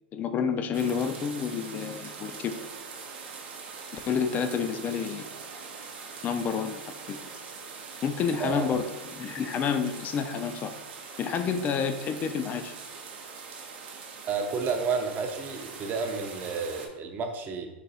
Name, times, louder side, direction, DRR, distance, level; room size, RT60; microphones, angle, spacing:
voice 1, 0.1-2.6 3.9-5.3 6.2-6.8 7.1-7.2 8.0-8.8 9.1-10.7 11.2-12.7, left 6 dB, 30° left, 9 dB, 0.4 m, -29 dB
sound 1, 0.7-16.9, right 5 dB, 75° right, 0.7 m, -42 dB
voice 2, 8.4-8.8 14.2-17.7, right 5 dB, 30° right, 5 dB, 0.5 m, -31 dB
3.9 x 2.3 x 4.0 m, 1.1 s
hypercardioid pair, 120°, 6 cm